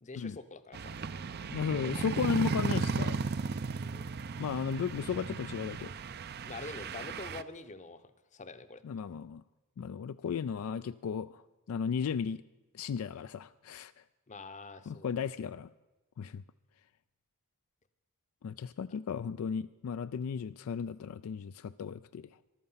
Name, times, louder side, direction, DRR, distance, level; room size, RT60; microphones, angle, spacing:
voice 1, 0.0-1.0 1.6-2.1 3.9-4.1 6.4-8.8 14.3-15.1, left 3 dB, 35° left, 11 dB, 0.8 m, -45 dB
sound 1, 0.7-7.4, right 4 dB, 50° right, 0.5 m, -35 dB
voice 2, 1.5-3.2 4.4-5.9 8.8-9.4 9.8-11.4 11.7-12.4 12.7-13.9 14.9-15.7 16.2-16.4 18.4-22.3, left 6 dB, 70° left, 13 dB, 0.3 m, -35 dB
14.5 x 12.0 x 5.6 m, 1.1 s
head